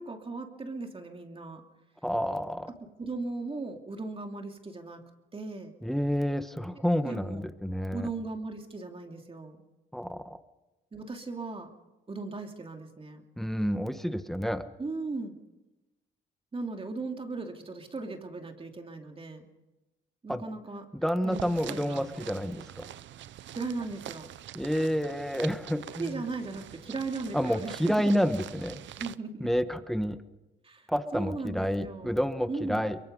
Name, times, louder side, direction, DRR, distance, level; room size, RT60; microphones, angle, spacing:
voice 1, 0.0-1.6 2.7-5.0 5.3-5.7 7.0-7.4 7.9-9.6 10.9-11.7 12.1-13.2 14.8-15.3 16.5-19.5 20.2-20.8 21.2-22.1 23.5-24.3 26.0-28.2 29.0-29.5 30.6-30.9 31.1-32.2 32.5-32.8, right 3 dB, 30° right, 4 dB, 2.6 m, -37 dB
voice 2, 2.0-2.7 5.8-8.1 9.9-10.4 13.4-14.6 20.3-20.4 20.9-22.9 24.5-26.2 27.3-28.8 29.4-30.2 30.9-33.0, equal, ahead, 10 dB, 1.3 m, -29 dB
sound 1, 21.3-29.2, right 12 dB, 70° right, 0.7 m, -45 dB
23.5 x 23.0 x 5.4 m, 1.1 s
cardioid pair, 90°, 20 cm